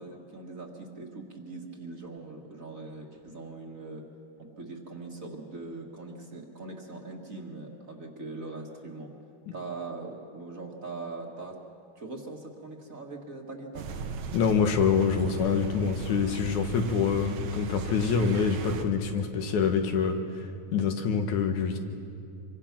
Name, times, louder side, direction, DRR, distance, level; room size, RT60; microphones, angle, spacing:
voice 1, 0.0-4.0 4.4-9.1 9.5-11.6 12.0-14.1, right 3 dB, 35° right, 1 dB, 1.7 m, -41 dB
sound 1, 13.7-18.8, right 3 dB, 75° right, 2.4 m, -37 dB
voice 2, 14.3-20.2 20.7-21.8, left 6 dB, 80° left, 5 dB, 2.9 m, -26 dB
26.5 x 23.5 x 6.0 m, 2.5 s
omnidirectional pair, 3.3 m